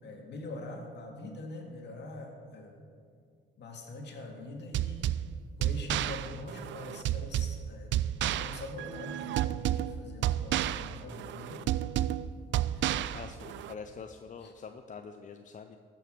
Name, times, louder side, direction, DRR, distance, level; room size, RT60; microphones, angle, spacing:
voice 1, 0.0-2.8 3.6-5.1 5.6-8.0 8.3-11.8 12.7-13.2 14.4-14.5, left 2 dB, 60° left, 1 dB, 2.2 m, -44 dB
sound 1, 4.7-13.7, right 12 dB, 70° right, 0.4 m, -31 dB
voice 2, 13.1-15.8, left 5 dB, 40° left, 7 dB, 0.6 m, -45 dB
15.0 x 6.1 x 6.1 m, 2.2 s
cardioid pair, 90°, 20 cm